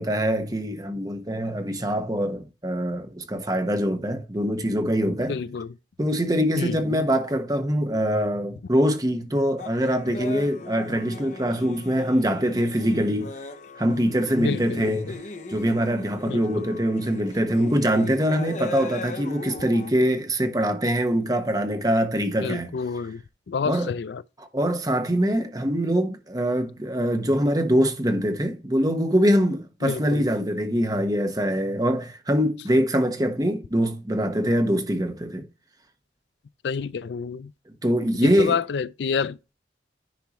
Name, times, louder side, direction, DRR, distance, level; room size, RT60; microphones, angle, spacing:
voice 1, 0.0-5.4 6.0-13.3 13.8-15.2 15.5-22.7 23.6-23.9 24.4-35.4 37.8-38.6, equal, 20° right, 1.2 m, -23 dB
voice 2, 5.3-5.7 6.6-7.0 14.4-15.2 16.3-16.7 22.4-23.2 23.5-24.2 29.8-30.3 36.6-37.5 38.2-39.4, left 5 dB, 75° left, 0.4 m, -29 dB
sound 1, 9.6-19.9, left 3 dB, 40° left, 0.9 m, -39 dB
10.5 x 4.7 x 3.0 m
head